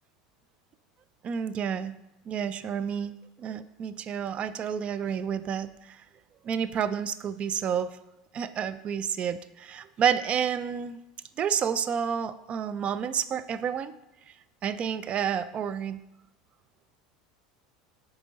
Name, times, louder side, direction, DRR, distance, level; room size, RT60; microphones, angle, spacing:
voice 1, 1.2-1.9 2.3-3.1 3.4-5.7 6.5-7.9 8.3-11.0 11.4-13.9 14.6-16.0, right 8 dB, 40° right, 14 dB, 0.4 m, -29 dB
8.1 x 4.8 x 3.7 m, 0.94 s
hypercardioid pair, 90°, 3 cm